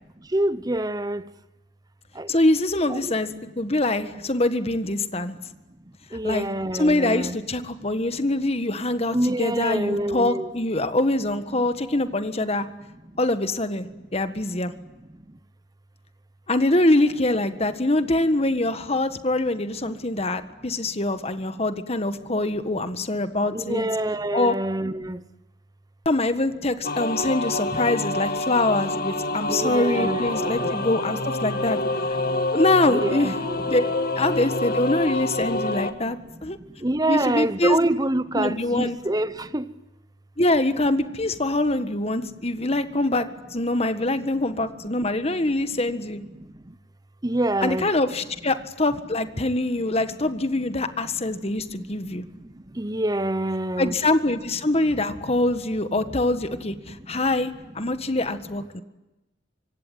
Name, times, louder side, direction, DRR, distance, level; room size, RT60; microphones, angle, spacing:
voice 1, 0.3-1.2 2.2-2.3 2.9-3.1 6.1-7.4 9.1-10.5 23.5-25.2 29.5-30.7 32.9-33.6 36.8-39.6 47.2-47.9 52.8-54.0, right 1 dB, 20° right, 1.0 m, -26 dB
voice 2, 2.3-5.4 6.2-6.4 6.7-12.6 13.2-14.7 16.5-23.9 24.3-24.5 26.0-31.8 32.1-32.2 32.5-33.4 33.7-33.8 34.1-36.6 37.1-37.8 38.3-39.0 40.4-46.2 47.6-52.2 53.8-58.8, left 2 dB, 35° left, 1.6 m, -24 dB
sound 1, 26.8-35.9, left 2 dB, 50° left, 2.0 m, -27 dB
25.5 x 24.5 x 9.4 m
head